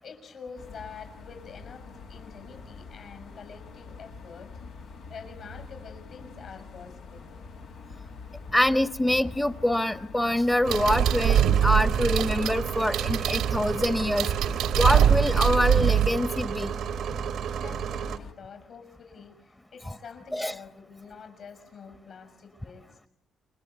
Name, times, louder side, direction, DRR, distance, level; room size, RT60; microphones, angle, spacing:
voice 1, 0.0-4.5 5.1-7.3 17.5-23.0, left 6 dB, 65° left, 6 dB, 6.1 m, -46 dB
sound 1, 0.6-18.3, left 4 dB, 80° left, 1.8 m, -45 dB
voice 2, 8.5-14.3 14.7-16.7 20.3-20.5, left 1 dB, 10° left, 12 dB, 1.0 m, -25 dB
sound 2, 10.6-18.2, right 8 dB, 75° right, 1.1 m, -32 dB
sound 3, 10.7-16.1, right 9 dB, 90° right, 1.4 m, -23 dB
29.5 x 21.0 x 8.3 m, 0.73 s
cardioid pair, 90°, 0 cm